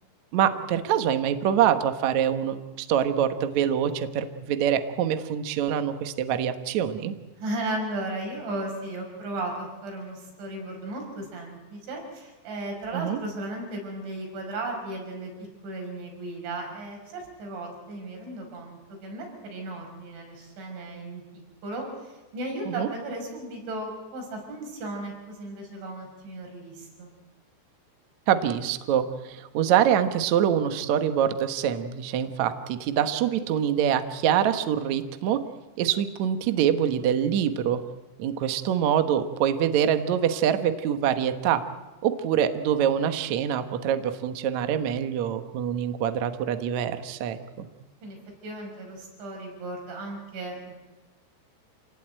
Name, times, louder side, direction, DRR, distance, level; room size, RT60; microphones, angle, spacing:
voice 1, 0.3-7.1 12.9-13.2 22.8-22.9 28.3-35.4 35.8-37.8 38.2-41.6 42.0-47.7, right 9 dB, 70° right, 9 dB, 1.7 m, -25 dB
voice 2, 7.4-15.3 15.6-21.2 21.6-27.1 48.0-48.2 48.4-50.7, right 2 dB, 85° right, 2 dB, 7.8 m, -35 dB
28.0 x 18.0 x 9.1 m, 1.2 s
omnidirectional pair, 5.2 m